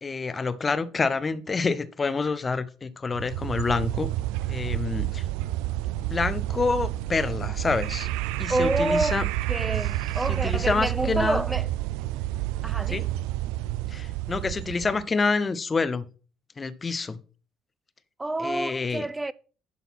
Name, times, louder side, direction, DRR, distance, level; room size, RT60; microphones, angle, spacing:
voice 1, 0.0-4.1 4.5-5.2 6.0-8.1 8.4-9.2 10.3-11.4 12.9-13.0 13.9-16.0 16.6-17.2 18.4-19.1, left 4 dB, 30° left, 0.9 m, -27 dB
sound 1, 3.1-15.0, right 15 dB, 85° right, 0.4 m, -29 dB
voice 2, 8.5-9.2 9.5-11.7 12.6-13.1 18.2-19.3, right 2 dB, 15° right, 0.6 m, -28 dB
11.0 x 4.1 x 5.8 m
supercardioid pair, 70°, 0 cm